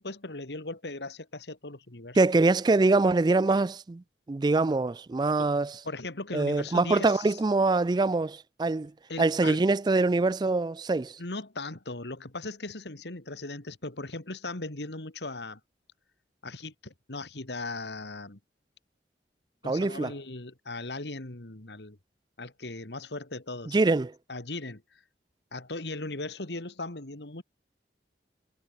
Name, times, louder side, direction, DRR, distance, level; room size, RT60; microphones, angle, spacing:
voice 1, 0.0-2.2 5.4-5.5 5.8-7.4 9.1-9.6 11.2-15.6 16.4-18.4 19.6-22.0 22.4-23.8 24.3-25.0 25.5-27.4, left 2 dB, 75° left, 2.3 m, -38 dB
voice 2, 2.2-4.0 4.3-5.7 6.3-8.9 9.2-11.2 19.7-20.1 23.7-24.1, right 3 dB, 25° right, 0.3 m, -24 dB
head